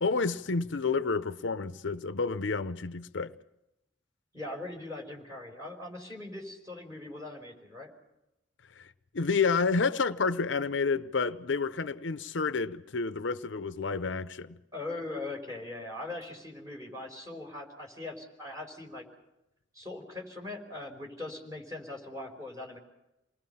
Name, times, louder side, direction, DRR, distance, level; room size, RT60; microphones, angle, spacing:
voice 1, 0.0-3.3 8.8-8.9 9.1-14.6, left 4 dB, 80° left, 0.7 m, -29 dB
voice 2, 4.3-7.9 14.7-19.0 19.7-22.8, left 2 dB, 20° right, 4.9 m, -40 dB
28.5 x 20.0 x 5.6 m
head